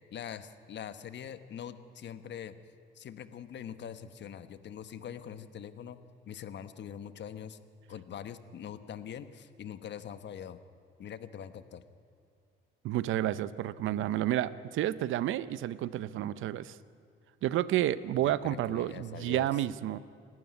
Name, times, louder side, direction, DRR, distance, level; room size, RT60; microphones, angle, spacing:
voice 1, 0.1-2.5 2.9-6.0 6.3-7.6 7.9-10.6 11.0-11.8 18.2-19.5, left 9 dB, 60° left, 12 dB, 1.2 m, -43 dB
voice 2, 12.8-16.8 17.4-20.0, right 13 dB, 80° right, 16 dB, 0.7 m, -30 dB
28.0 x 12.5 x 9.5 m, 2.3 s
cardioid pair, 90°, 20 cm